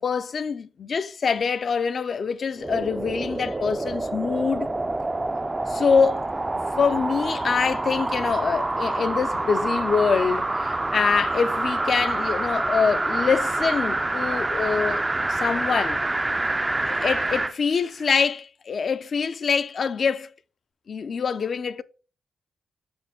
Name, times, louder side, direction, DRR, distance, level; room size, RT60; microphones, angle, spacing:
voice 1, 0.0-4.7 5.7-6.3 6.8-15.0 15.3-16.0 16.8-20.3 20.9-21.8, left 5 dB, 50° left, 0.5 m, -25 dB
sound 1, 2.6-17.6 18.0-18.1, right 2 dB, 20° right, 0.4 m, -27 dB
6.4 x 4.4 x 5.3 m
cardioid pair, 85°, 0 cm